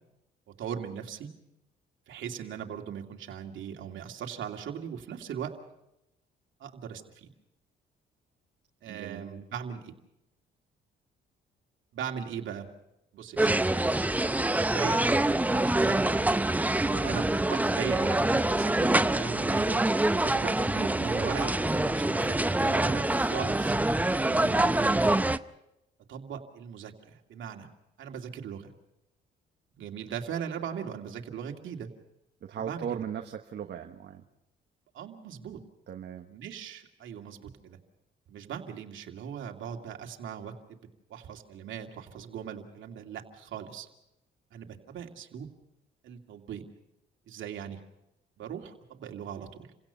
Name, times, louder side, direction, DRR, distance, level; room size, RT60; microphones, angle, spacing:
voice 1, 0.6-1.3 2.1-5.6 6.6-7.3 8.8-9.9 11.9-12.7 13.1-13.6 14.6-15.1 15.4-16.3 16.8-19.8 20.2-23.8 24.5-24.8 26.1-27.7 28.0-28.7 29.8-31.9 32.6-33.0 34.9-35.6 36.3-37.8 38.3-43.9 44.5-45.5 46.0-46.6 47.3-47.8 48.4-49.5, right 8 dB, 75° right, 3 dB, 2.5 m, -39 dB
voice 2, 8.9-9.4 24.3-24.7 32.4-34.2 35.9-36.3, right 8 dB, 60° right, 4 dB, 1.3 m, -38 dB
sound 1, 13.4-25.4, right 2 dB, 10° right, 0.7 m, -25 dB
29.0 x 17.0 x 5.6 m, 0.86 s
cardioid pair, 90°, 20 cm